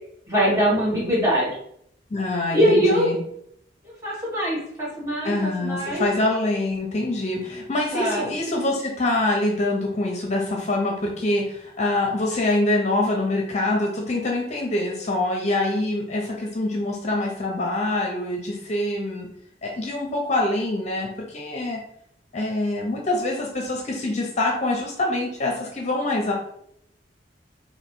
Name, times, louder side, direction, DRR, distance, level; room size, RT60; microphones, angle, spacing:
voice 1, 0.3-1.5 2.5-3.1 4.0-6.0 7.9-8.3, equal, 15° right, -7 dB, 1.6 m, -22 dB
voice 2, 2.1-3.2 5.2-19.3 19.6-21.8 22.3-26.3, left 2 dB, 40° left, 0 dB, 0.7 m, -25 dB
3.1 x 2.8 x 4.5 m, 0.72 s
head